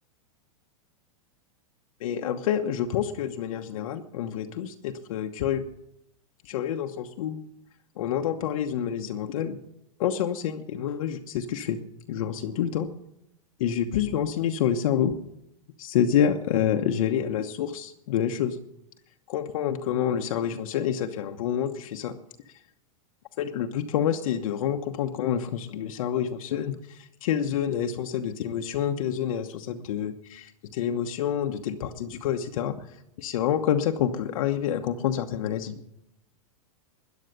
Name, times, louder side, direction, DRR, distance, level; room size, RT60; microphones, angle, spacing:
voice 1, 2.0-5.6 6.4-7.4 8.0-9.6 10.0-11.8 12.1-12.9 13.6-15.1 15.8-18.6 19.3-22.1 23.4-32.8 33.2-35.8, left 9 dB, 70° left, 4 dB, 1.1 m, -28 dB
13.5 x 10.5 x 6.8 m, 0.79 s
hypercardioid pair, 130°, 18 cm